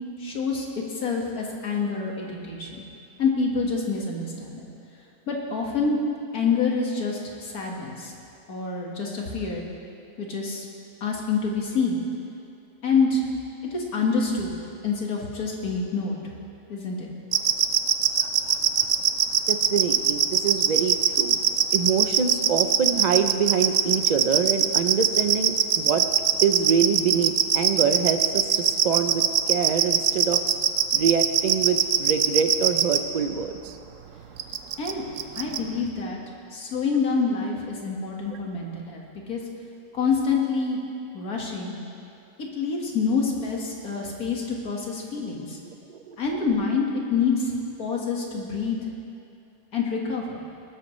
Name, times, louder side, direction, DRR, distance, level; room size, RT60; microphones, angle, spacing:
voice 1, 0.2-0.7 0.9-2.8 3.2-4.7 5.3-6.0 6.3-8.1 8.5-9.6 10.2-10.7 11.0-12.0 12.8-13.2 13.6-14.6 14.8-16.2 16.7-17.1 34.8-35.0 35.3-36.2 36.5-39.4 39.9-40.8 41.1-41.7 42.4-45.6 46.2-47.5 47.8-48.8 49.7-50.4, left 4 dB, 90° left, -1 dB, 2.2 m, -27 dB
sound 1, 17.3-33.0 34.4-34.9 35.2-35.6, right 9 dB, 65° right, 0.9 m, -21 dB
voice 2, 19.5-21.4 21.7-26.0 26.4-30.4 30.9-33.8 38.3-38.4 45.9-46.2 46.5-46.6, right 6 dB, 50° right, 8 dB, 0.5 m, -25 dB
19.0 x 13.0 x 3.2 m, 2.7 s
omnidirectional pair, 1.5 m